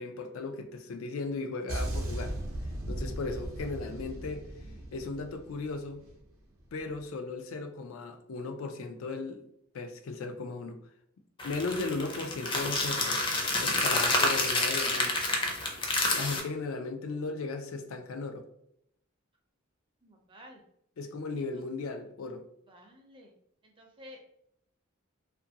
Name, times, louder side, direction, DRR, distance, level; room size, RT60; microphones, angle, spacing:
voice 1, 0.0-2.3 2.9-4.5 4.9-6.0 6.7-9.4 9.7-10.8 11.4-13.2 13.6-15.2 16.1-18.5 21.0-22.5, left 3 dB, 80° left, 0.4 m, -36 dB
sound 1, 1.7-6.2 6.5-6.8, right 1 dB, 80° right, 0.6 m, -37 dB
sound 2, 11.4-16.4, left 2 dB, 25° left, 0.5 m, -28 dB
voice 2, 20.0-20.6 22.7-23.3 23.6-24.2, left 1 dB, 25° right, 0.5 m, -52 dB
2.6 x 2.5 x 2.7 m
head